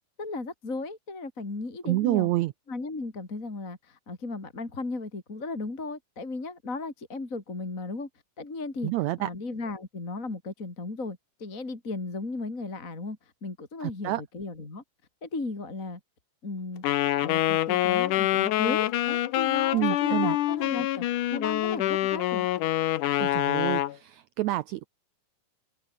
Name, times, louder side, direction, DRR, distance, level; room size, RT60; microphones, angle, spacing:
voice 1, 0.2-2.3 2.7-8.1 8.4-8.9 9.2-14.8 15.2-16.0 16.4-16.8 17.2-21.1 21.3-22.5, left 3 dB, 25° left, 3.8 m, -35 dB
voice 2, 1.8-2.5 8.8-9.3 13.8-14.2 19.7-20.3 23.2-24.9, right 17 dB, 90° right, 1.6 m, -28 dB
Wind instrument woodwind instrument, 16.8-24.0, left 14 dB, 70° left, 2.4 m, -26 dB
open air
omnidirectional pair, 4.0 m